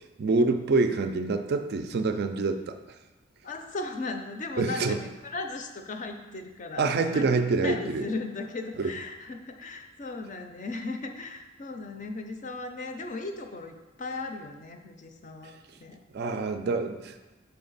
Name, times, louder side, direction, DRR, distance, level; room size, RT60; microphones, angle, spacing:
voice 1, 0.2-2.8 4.6-5.0 6.8-8.0 8.8-8.9 16.1-17.3, right 3 dB, 50° right, 8 dB, 0.3 m, -26 dB
voice 2, 3.4-7.3 7.6-15.5 15.8-16.0, left 3 dB, 35° left, 5 dB, 0.5 m, -37 dB
5.7 x 4.3 x 4.0 m, 1.1 s
head